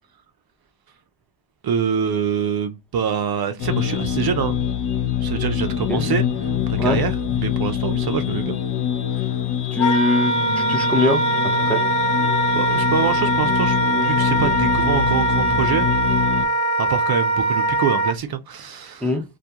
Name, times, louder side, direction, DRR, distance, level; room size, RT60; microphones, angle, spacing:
voice 1, 1.6-4.8 5.2-8.6 9.1-9.4 12.5-15.9 16.8-19.1, right 7 dB, 55° right, 0.5 m, -25 dB
sound 1, 3.6-16.5, left 9 dB, 60° left, 0.6 m, -24 dB
voice 2, 9.7-11.2 11.6-11.8 19.0-19.2, left 2 dB, 5° left, 0.5 m, -22 dB
Wind instrument woodwind instrument, 9.8-18.1, right 1 dB, 85° left, 0.8 m, -21 dB
2.3 x 2.2 x 2.7 m
wide cardioid pair, 125°, 47 cm